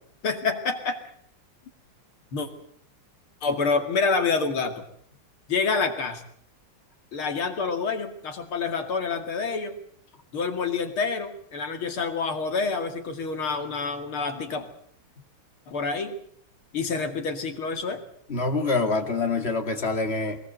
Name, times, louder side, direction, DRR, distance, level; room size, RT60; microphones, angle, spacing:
voice 1, 0.2-1.0 2.3-2.5 3.4-4.8 5.5-6.2 7.1-9.8 10.3-14.7 15.7-16.2 16.7-18.0, left 4 dB, 75° left, 6 dB, 3.1 m, -27 dB
voice 2, 18.3-20.4, left 3 dB, 30° left, 5 dB, 2.4 m, -25 dB
22.0 x 20.0 x 7.9 m, 0.64 s
omnidirectional pair, 2.4 m